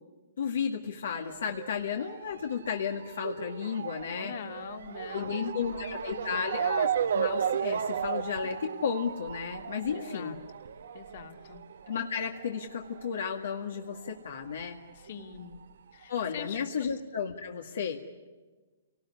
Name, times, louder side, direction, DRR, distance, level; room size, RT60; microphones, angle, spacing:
voice 1, 0.4-4.3 5.1-10.3 11.9-14.8 16.1-18.0, left 7 dB, 80° left, 2 dB, 2.0 m, -33 dB
Motor vehicle (road) / Siren, 1.1-14.1 14.4-15.6 16.2-16.3 16.5-16.6, right 8 dB, 75° right, 1.0 m, -35 dB
voice 2, 4.2-6.5 9.9-10.4 10.9-11.6 14.9-15.6 15.9-16.9, left 8 dB, 60° left, 5 dB, 2.6 m, -44 dB
29.0 x 19.0 x 9.8 m, 1.3 s
hypercardioid pair, 150°, 0 cm